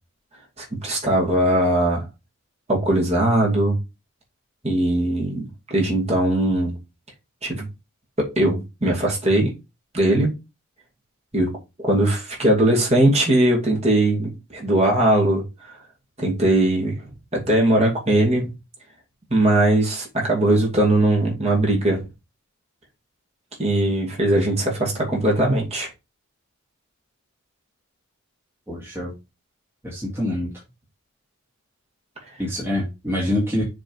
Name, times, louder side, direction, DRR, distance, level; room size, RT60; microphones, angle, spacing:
voice 1, 0.6-2.0 2.7-3.8 4.6-6.8 7.4-7.7 8.2-9.5 9.9-10.3 11.3-11.5 11.8-15.5 16.2-17.0 17.3-18.5 19.3-22.1 23.6-25.9, right 1 dB, 30° right, 2.5 m, -20 dB
voice 2, 28.7-29.1 29.8-30.5 32.4-33.6, left 1 dB, 10° right, 1.9 m, -25 dB
6.9 x 3.6 x 4.6 m
head